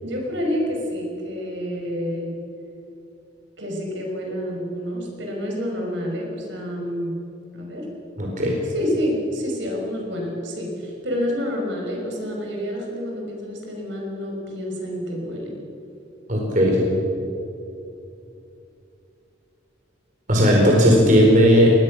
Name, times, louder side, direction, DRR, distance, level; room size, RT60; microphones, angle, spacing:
voice 1, 0.0-2.3 3.6-7.2 7.5-7.9 8.7-15.5, equal, 70° right, 0 dB, 5.8 m, -28 dB
voice 2, 8.2-8.6 16.3-16.8 20.3-21.7, equal, 40° right, -2 dB, 4.5 m, -16 dB
23.5 x 20.0 x 6.4 m, 2.8 s
head